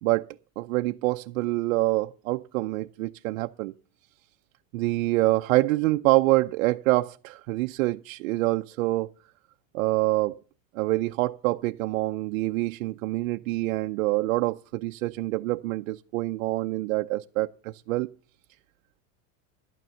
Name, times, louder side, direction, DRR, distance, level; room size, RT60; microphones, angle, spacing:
voice 1, 0.0-3.7 4.7-9.1 9.7-10.4 10.7-18.1, right 19 dB, 85° right, 0.6 m, -26 dB
12.0 x 9.2 x 6.9 m
supercardioid pair, 165°, 40 cm